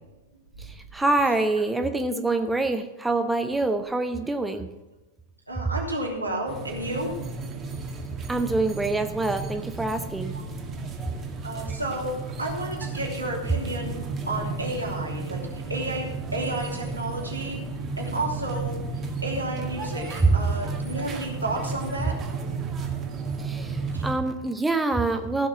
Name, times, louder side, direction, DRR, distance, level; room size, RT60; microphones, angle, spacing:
voice 1, 0.6-4.7 8.3-10.3 23.4-25.5, right 2 dB, 5° right, 7 dB, 0.8 m, -26 dB
voice 2, 5.5-7.1 11.4-14.0 14.3-15.4 15.7-16.1 16.3-17.6 18.0-18.8 19.2-22.1 23.9-24.1, right 1 dB, 85° right, -2 dB, 3.1 m, -31 dB
sound 1, 6.5-24.1, right 4 dB, 25° right, 1.8 m, -33 dB
15.5 x 6.2 x 6.0 m, 1.1 s
figure-of-eight pair, 95°, 0 cm